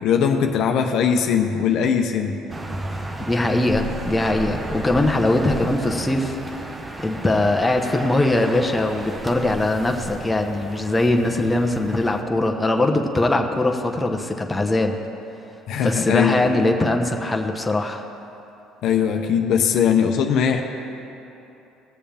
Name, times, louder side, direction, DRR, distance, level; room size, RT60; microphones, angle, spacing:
voice 1, 0.0-2.4 15.7-16.7 18.8-20.6, left 7 dB, 65° left, 4 dB, 0.8 m, -20 dB
sound 1, 2.5-12.2, right 2 dB, 20° right, 0.8 m, -33 dB
voice 2, 3.3-6.4 7.0-15.0 15.8-18.0, left 2 dB, 15° left, 3 dB, 0.9 m, -21 dB
18.0 x 7.0 x 3.5 m, 2.9 s
supercardioid pair, 95°, 0 cm